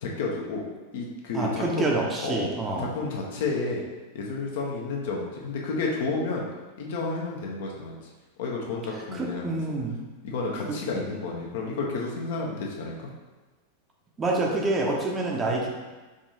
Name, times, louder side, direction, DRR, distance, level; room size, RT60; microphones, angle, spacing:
voice 1, 0.0-0.6 0.9-1.9 2.2-2.5 2.8-3.8 4.1-6.4 6.8-7.9 8.4-9.8 10.2-13.1, left 3 dB, 55° left, -1 dB, 0.7 m, -31 dB
voice 2, 1.3-2.9 9.1-10.0 10.7-10.8 14.2-15.7, right 2 dB, 20° right, -1 dB, 0.6 m, -27 dB
4.8 x 2.6 x 2.7 m, 1.2 s
figure-of-eight pair, 90°, 0 cm